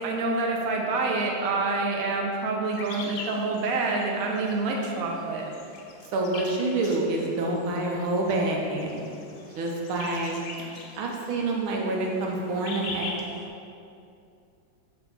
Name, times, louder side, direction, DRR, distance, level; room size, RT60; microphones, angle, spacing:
voice 1, 0.0-5.4, right 3 dB, 60° right, 0 dB, 1.0 m, -27 dB
sound 1, 2.7-13.5, left 3 dB, 80° left, 1.5 m, -42 dB
voice 2, 6.1-9.0 9.6-10.4 11.0-13.1, right 2 dB, 85° right, -1 dB, 1.7 m, -27 dB
6.8 x 3.4 x 5.5 m, 2.6 s
omnidirectional pair, 2.2 m